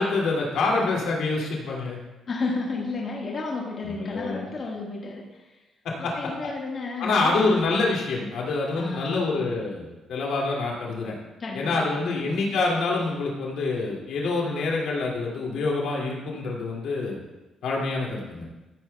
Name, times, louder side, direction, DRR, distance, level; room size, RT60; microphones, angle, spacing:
voice 1, 0.0-2.0 3.9-4.5 5.8-6.3 7.0-11.1 11.5-17.2 17.6-18.5, left 3 dB, 80° left, -2 dB, 2.3 m, -26 dB
voice 2, 2.3-5.6 6.0-7.5 8.8-9.4 11.4-12.5, left 3 dB, 50° left, -2 dB, 1.5 m, -32 dB
14.0 x 9.1 x 2.3 m, 1.1 s
cardioid pair, 90°, 0 cm